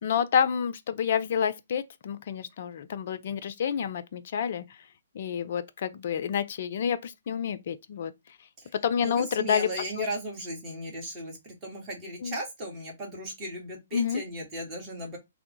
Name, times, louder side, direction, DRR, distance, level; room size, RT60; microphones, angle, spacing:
voice 1, 0.0-4.6 5.1-8.1 8.8-9.7 9.9-10.0 12.2-12.4 13.9-14.2, left 7 dB, 50° left, 0.4 m, -28 dB
voice 2, 9.0-15.2, right 1 dB, 25° right, 1.3 m, -36 dB
3.3 x 2.0 x 3.0 m
figure-of-eight pair, 125°, 0 cm